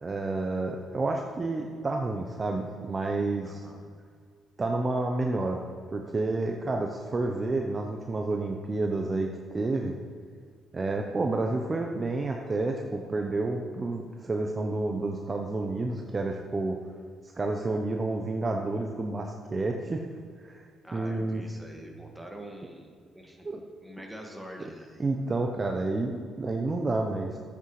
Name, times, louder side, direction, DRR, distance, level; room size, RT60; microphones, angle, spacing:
voice 1, 0.0-3.6 4.6-5.6 5.9-10.0 10.7-16.8 17.3-20.0 20.4-20.6 20.9-21.4 23.4-23.6 25.0-27.4, right 2 dB, 30° right, 2 dB, 0.8 m, -30 dB
voice 2, 3.4-3.8 20.8-24.9, right 1 dB, 5° right, 1 dB, 1.8 m, -45 dB
12.0 x 8.2 x 3.2 m, 2.1 s
supercardioid pair, 75°, 0 cm